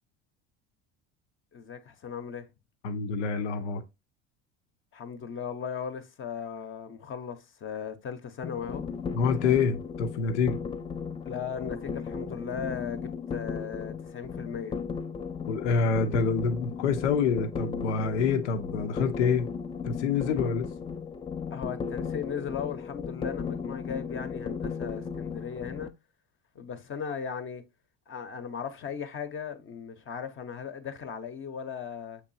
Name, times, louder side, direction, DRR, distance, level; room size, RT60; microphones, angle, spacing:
voice 1, 1.5-2.5 4.9-8.8 11.2-14.8 20.4-20.5 21.5-25.9 26.5-27.6 28.1-32.2, left 7 dB, 35° left, 0.8 m, -37 dB
voice 2, 2.8-3.8 9.1-10.6 15.5-19.5 19.8-20.6, left 5 dB, 85° left, 0.6 m, -27 dB
sound 1, 8.4-25.9, left 6 dB, 15° left, 0.4 m, -36 dB
6.6 x 3.0 x 2.7 m
hypercardioid pair, 75°, 34 cm